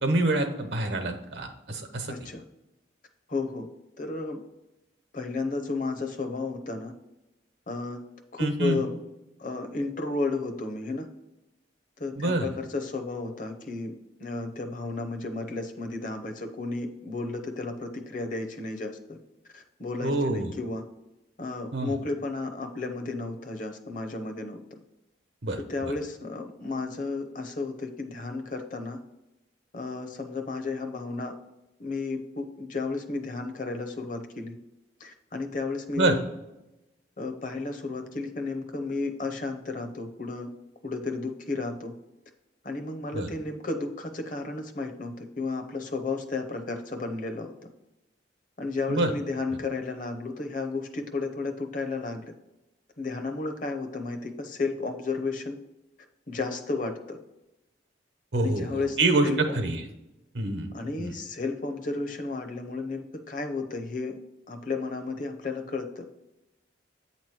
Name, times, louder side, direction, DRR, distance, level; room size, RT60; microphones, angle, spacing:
voice 1, 0.0-2.1 8.4-8.8 12.2-12.5 20.0-20.5 21.7-21.9 25.4-25.9 36.0-36.2 43.1-43.3 48.9-49.1 58.3-59.8 60.3-60.7 61.0-61.1, right 2 dB, 70° right, 5 dB, 1.0 m, -26 dB
voice 2, 2.1-2.4 3.3-3.7 4.0-4.4 5.1-6.9 7.7-8.0 8.3-9.0 9.4-11.1 12.0-13.9 14.2-19.2 19.5-20.8 21.4-24.6 25.7-29.0 29.7-31.3 31.8-34.6 35.0-36.2 37.2-40.5 40.8-41.9 42.6-47.5 48.6-52.3 53.0-55.6 56.3-57.2 58.4-59.0 59.2-59.6 60.7-64.2 64.5-66.0, left 3 dB, 45° left, 5 dB, 0.7 m, -33 dB
8.5 x 3.0 x 6.0 m, 0.94 s
head